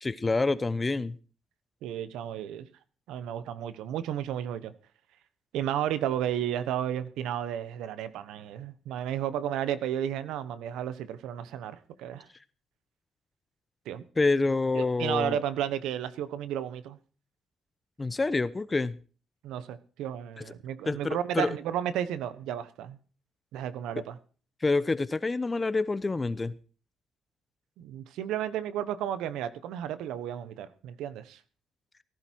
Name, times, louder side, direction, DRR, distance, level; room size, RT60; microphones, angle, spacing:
voice 1, 0.0-1.1 14.2-15.4 18.0-19.0 20.9-21.5 24.6-26.5, left 3 dB, 25° left, 16 dB, 0.9 m, -27 dB
voice 2, 1.8-2.7 3.1-4.7 5.5-12.3 13.8-14.0 14.7-17.0 19.4-23.0 23.5-24.2 27.8-31.4, right 10 dB, 90° right, 14 dB, 1.2 m, -33 dB
17.5 x 11.5 x 4.7 m, 0.39 s
cardioid pair, 90°, 0 cm